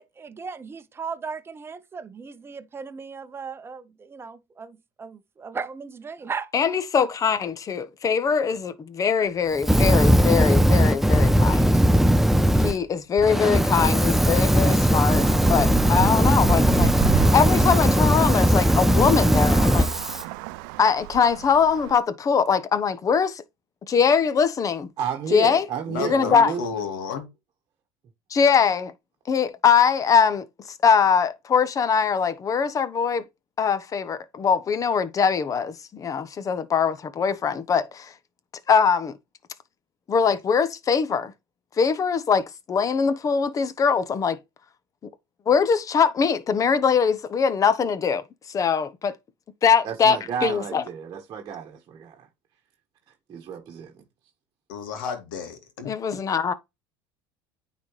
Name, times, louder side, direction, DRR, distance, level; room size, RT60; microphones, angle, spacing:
voice 1, 0.0-6.5, right 5 dB, 20° right, 0.9 m, -36 dB
voice 2, 6.5-11.8 12.5-16.9 17.3-19.9 20.8-23.4 23.9-24.9 25.3-25.7 26.0-26.5 28.3-28.9 29.3-30.5 30.8-33.2 33.6-38.1 38.7-39.2 40.1-41.3 41.8-44.4 45.5-49.1 49.6-50.8 55.9-56.5, left 6 dB, 30° left, 1.0 m, -22 dB
Fire, 9.6-12.7 13.2-20.2, equal, 5° right, 0.4 m, -19 dB
Traffic noise roadway noise, 15.1-22.0, right 16 dB, 75° right, 0.5 m, -32 dB
voice 3, 25.0-26.8 49.8-52.3 53.3-54.0, right 7 dB, 40° right, 1.4 m, -32 dB
voice 4, 25.9-27.3 54.7-55.9, left 6 dB, 90° left, 2.2 m, -32 dB
9.4 x 4.2 x 3.2 m
supercardioid pair, 110°, 11 cm